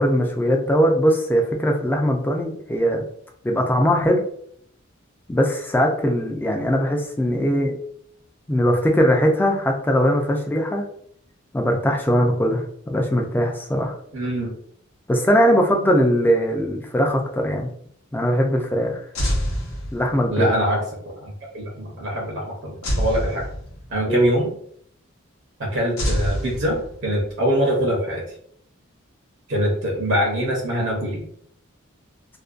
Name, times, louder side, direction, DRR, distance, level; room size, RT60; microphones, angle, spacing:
voice 1, 0.0-3.0 3.4-4.2 5.3-7.7 8.5-10.8 11.5-13.9 15.1-17.7 18.1-19.0 19.9-20.5 24.1-24.3, equal, 10° left, 1 dB, 0.3 m, -20 dB
voice 2, 14.1-14.5 20.3-23.4 23.9-24.5 25.6-26.8 27.0-28.2 29.5-31.2, equal, 65° right, -1 dB, 0.7 m, -24 dB
sound 1, 19.2-20.4 22.8-24.1 26.0-27.3, equal, 85° left, 0.6 m, -26 dB
2.4 x 2.2 x 2.4 m, 0.66 s
head